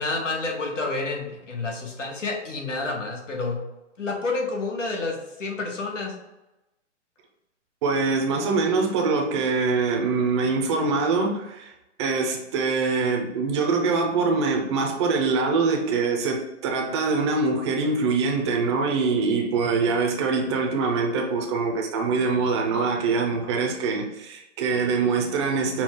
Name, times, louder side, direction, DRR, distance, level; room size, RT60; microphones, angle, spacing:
voice 1, 0.0-3.6 4.0-6.1 19.6-19.7, left 3 dB, 85° left, 1.4 m, -29 dB
voice 2, 7.8-11.7 12.0-25.8, right 4 dB, 25° right, 0.6 m, -24 dB
5.6 x 2.3 x 3.7 m
hypercardioid pair, 145°, 37 cm